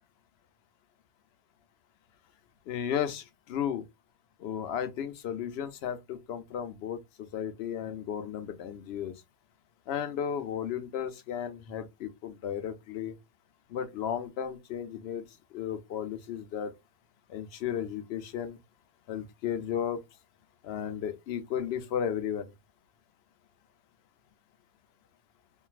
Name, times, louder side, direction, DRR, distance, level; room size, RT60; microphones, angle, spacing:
voice 1, 2.7-3.8 4.4-7.0 7.3-9.1 9.9-13.1 13.7-15.2 15.5-16.7 17.3-18.6 19.1-20.0 20.6-22.5, left 9 dB, 65° left, 0.8 m, -34 dB
3.1 x 2.5 x 2.3 m
omnidirectional pair, 1.3 m